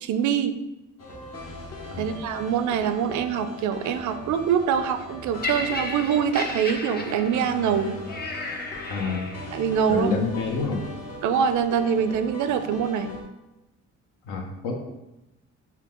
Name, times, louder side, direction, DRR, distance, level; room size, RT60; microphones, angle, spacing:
voice 1, 0.0-0.6 2.0-8.0 9.5-10.1 11.2-13.1, right 8 dB, 75° right, 10 dB, 0.5 m, -24 dB
sound 1, 1.0-13.2, left 2 dB, 55° left, 1.1 m, -40 dB
Laughter, 5.4-9.7 10.5-10.6, left 2 dB, 35° left, 0.7 m, -34 dB
voice 2, 8.9-9.3 9.9-10.8 14.2-14.7, left 4 dB, 85° left, 2 dB, 0.9 m, -28 dB
5.7 x 2.3 x 3.6 m, 0.96 s
cardioid pair, 90°, 30 cm